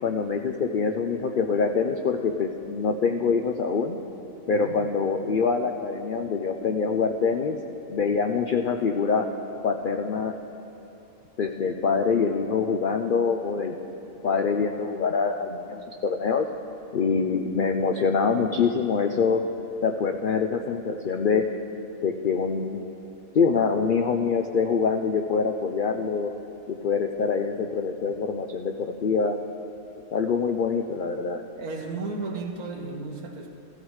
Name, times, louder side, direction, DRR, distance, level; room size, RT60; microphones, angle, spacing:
voice 1, 0.0-4.0 4.5-7.6 7.9-9.3 9.6-10.3 11.4-13.7 14.2-16.5 16.9-19.4 19.8-21.5 22.0-22.8 23.3-26.3 26.7-29.4 30.1-31.4, left 5 dB, 90° left, 5 dB, 0.4 m, -25 dB
voice 2, 31.5-33.5, right 3 dB, 80° right, 2 dB, 1.6 m, -34 dB
15.5 x 14.5 x 3.2 m, 2.9 s
omnidirectional pair, 1.5 m